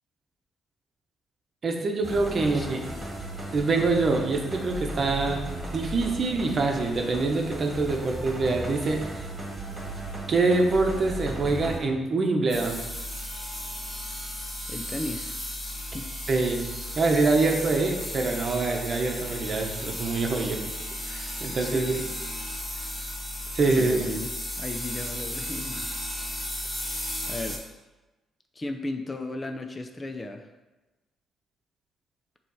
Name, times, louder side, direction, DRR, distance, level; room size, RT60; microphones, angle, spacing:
voice 1, 1.6-2.9 3.5-5.4 5.7-9.3 10.3-12.8 16.3-16.7 17.0-20.6 21.1-21.9 23.5-24.1, right 3 dB, 45° right, 2 dB, 0.9 m, -25 dB
sound 1, 2.0-11.8, right 1 dB, 25° right, 1.6 m, -36 dB
voice 2, 2.4-3.1 14.7-15.4 15.9-16.1 21.5-22.1 22.7-22.9 23.7-25.9 27.3-27.6 28.6-30.5, left 2 dB, 25° left, 5 dB, 0.5 m, -35 dB
sound 2, 12.5-27.6, left 1 dB, 10° left, 1.9 m, -35 dB
6.7 x 3.2 x 4.8 m, 1.1 s
cardioid pair, 80°, 0 cm